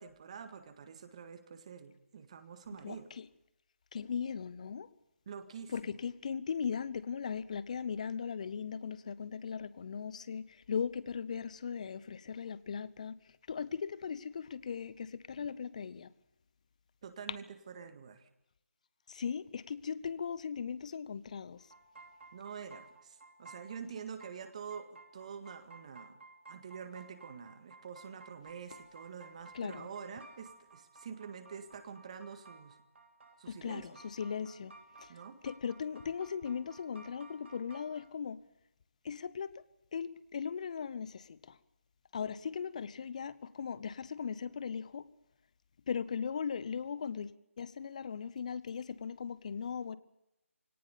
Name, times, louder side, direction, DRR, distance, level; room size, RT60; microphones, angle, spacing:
voice 1, 0.0-3.1 5.3-5.7 17.0-18.3 22.3-26.2 26.5-32.8 33.4-33.9 35.1-35.4, right 6 dB, 25° right, 1.8 m, -47 dB
voice 2, 2.8-3.3 3.9-4.9 5.7-13.2 13.5-16.1 19.1-21.6 29.5-29.9 33.5-34.7 35.0-35.1 35.4-38.4 39.0-39.5 39.9-41.5 42.1-45.1 45.9-47.3 47.6-50.0, left 6 dB, 30° left, 0.9 m, -38 dB
sound 1, 21.6-38.1, right 3 dB, 55° right, 3.2 m, -56 dB
22.5 x 18.0 x 7.0 m
figure-of-eight pair, 160°, 8 cm